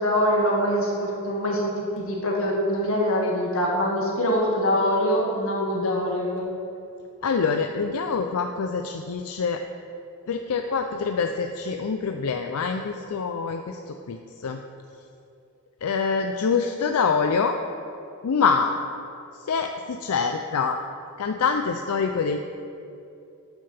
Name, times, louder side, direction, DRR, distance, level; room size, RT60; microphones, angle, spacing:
voice 1, 0.0-6.5, equal, 65° left, -2 dB, 2.0 m, -24 dB
voice 2, 7.2-9.6 10.3-14.6 15.8-17.6 18.2-18.7 19.4-20.8 21.2-22.4, left 5 dB, 90° left, 5 dB, 0.5 m, -25 dB
12.5 x 9.0 x 3.4 m, 2.7 s
head